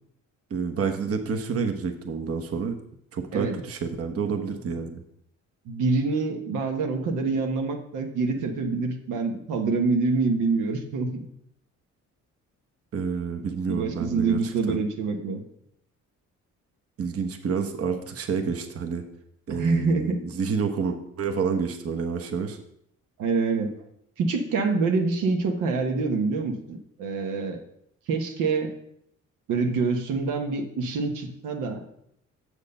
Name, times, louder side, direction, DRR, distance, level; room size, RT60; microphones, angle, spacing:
voice 1, 0.5-2.8 3.1-5.0 12.9-14.8 17.0-19.0 19.5-22.6, right 5 dB, 50° right, 5 dB, 1.1 m, -29 dB
voice 2, 5.7-11.3 13.7-15.4 19.5-20.2 23.2-23.7 24.2-27.6 28.1-28.7 29.5-31.8, right 4 dB, 90° right, 3 dB, 1.2 m, -26 dB
7.2 x 6.5 x 5.4 m, 0.73 s
cardioid pair, 90°, 30 cm